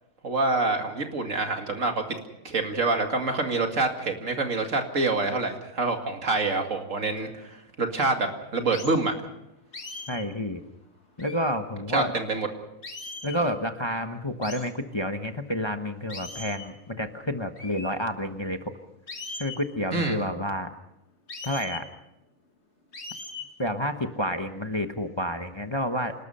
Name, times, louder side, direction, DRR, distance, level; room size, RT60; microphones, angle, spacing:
voice 1, 0.2-2.0 2.4-9.1 11.9-12.5 19.9-20.2, right 3 dB, 70° right, 4 dB, 2.6 m, -26 dB
sound 1, 8.7-9.0 9.7-10.3 11.2-11.6 12.8-13.4 14.4-14.7 16.1-16.7 17.6-17.9 19.1-19.6 21.3-21.9 22.9-23.5, left 3 dB, 55° left, 2.3 m, -39 dB
voice 2, 10.1-10.6 11.2-12.1 13.2-18.7 19.4-20.7 21.4-21.8 23.6-26.1, equal, 20° left, 6 dB, 1.1 m, -29 dB
27.5 x 19.5 x 5.6 m, 0.88 s
omnidirectional pair, 1.4 m